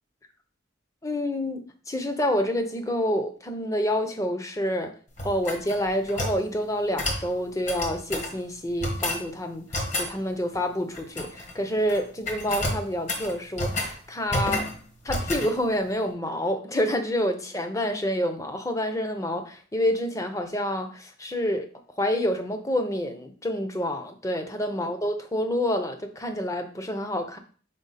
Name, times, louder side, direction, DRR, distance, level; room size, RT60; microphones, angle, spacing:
voice 1, 1.0-1.6 1.9-4.9 5.2-9.6 10.0-14.7 15.0-21.7 22.0-27.4, equal, 15° left, 7 dB, 0.6 m, -28 dB
sound 1, 5.2-6.4 7.0-7.3 7.7-8.3 8.8-9.2 9.7-10.1 10.9-11.5 11.8-12.0 12.3-13.9 14.3-14.8 15.1-15.5, left 1 dB, 40° left, 1.2 m, -30 dB
5.1 x 4.4 x 4.1 m, 0.42 s
head